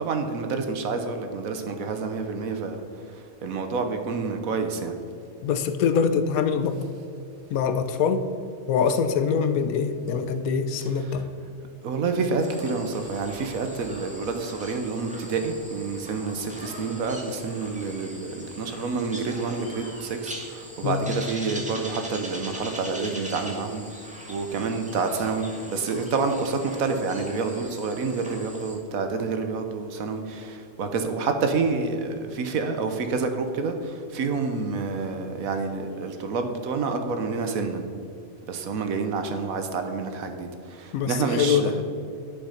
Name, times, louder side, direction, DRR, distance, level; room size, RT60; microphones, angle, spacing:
voice 1, 0.0-2.8 3.1-4.9 11.8-37.9 38.5-41.8, right 4 dB, 80° right, 6 dB, 1.3 m, -28 dB
voice 2, 5.4-6.8 7.5-8.2 8.7-11.3 20.8-21.1 40.9-41.8, left 6 dB, 85° left, 10 dB, 1.2 m, -24 dB
sound 1, 12.4-28.8, equal, 5° right, 1.4 m, -41 dB
9.8 x 6.9 x 5.7 m, 2.3 s
omnidirectional pair, 1.5 m